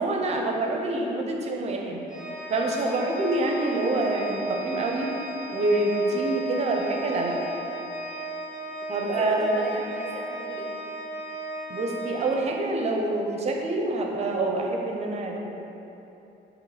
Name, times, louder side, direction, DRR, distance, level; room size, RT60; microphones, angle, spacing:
voice 1, 0.0-2.0 2.5-5.1 5.5-7.4 8.9-9.8 11.7-15.4, right 2 dB, 35° right, 1 dB, 0.6 m, -26 dB
Organ, 2.1-12.9, right 2 dB, 45° left, 1.3 m, -35 dB
voice 2, 9.0-10.9, right 1 dB, 5° left, -4 dB, 0.4 m, -38 dB
6.2 x 3.1 x 4.9 m, 3.0 s
cardioid pair, 145°, 18 cm